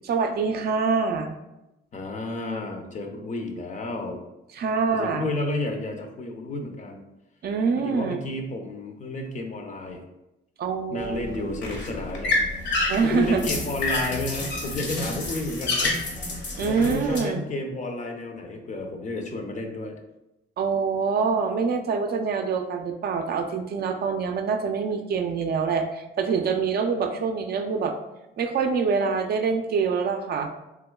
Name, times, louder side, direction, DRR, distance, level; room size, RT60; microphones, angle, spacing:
voice 1, 0.1-1.3 4.5-5.3 7.4-8.2 10.6-11.4 12.9-13.5 16.6-17.4 20.6-27.9 28.4-30.5, right 5 dB, 50° right, 5 dB, 0.4 m, -25 dB
voice 2, 1.9-4.2 4.9-7.0 7.8-10.0 10.9-12.4 12.7-16.0 16.6-20.0, left 2 dB, 40° left, 3 dB, 0.5 m, -31 dB
sound 1, 11.0-17.2, left 2 dB, 65° left, 0.9 m, -29 dB
3.4 x 2.9 x 2.2 m, 0.94 s
cardioid pair, 90°, 20 cm